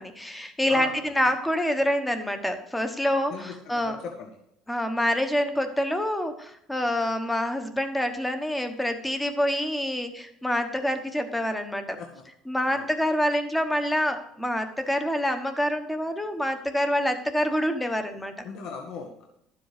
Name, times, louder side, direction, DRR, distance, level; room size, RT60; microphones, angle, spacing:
voice 1, 0.0-4.0 4.7-12.0 12.5-18.3, equal, 5° left, 8 dB, 1.2 m, -26 dB
voice 2, 3.3-4.4 12.0-12.2 12.7-12.9 18.4-19.3, left 5 dB, 60° left, 2 dB, 1.7 m, -39 dB
12.0 x 7.7 x 5.0 m, 0.77 s
cardioid pair, 150°, 0 cm